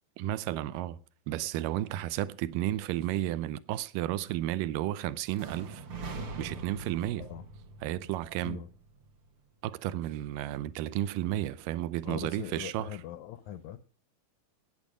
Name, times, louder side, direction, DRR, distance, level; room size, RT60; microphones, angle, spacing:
voice 1, 0.2-1.0 1.3-5.9 6.4-7.3 7.8-8.6 9.6-13.0, right 13 dB, 75° right, 2.2 m, -32 dB
sound 1, 5.4-9.3, right 3 dB, 55° right, 1.7 m, -43 dB
voice 2, 12.0-13.8, left 10 dB, 80° left, 1.7 m, -41 dB
18.0 x 8.4 x 5.0 m
omnidirectional pair, 4.3 m